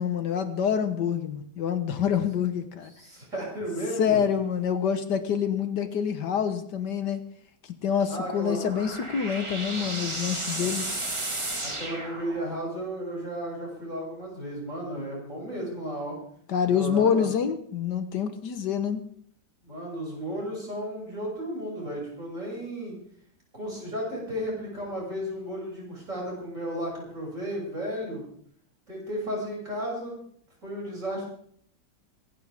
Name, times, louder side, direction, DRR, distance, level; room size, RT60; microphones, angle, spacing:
voice 1, 0.0-2.9 4.0-7.2 7.8-11.0 16.5-19.0, left 7 dB, 70° left, 9 dB, 1.7 m, -26 dB
voice 2, 3.0-4.2 8.1-8.6 10.6-10.7 11.6-16.2 16.6-17.3 19.6-23.0 23.5-28.2 28.9-30.2 30.6-31.2, equal, 45° right, -3 dB, 7.5 m, -34 dB
sound 1, 8.3-12.8, right 2 dB, 15° right, 1.5 m, -34 dB
24.5 x 11.5 x 3.6 m, 0.63 s
omnidirectional pair, 1.9 m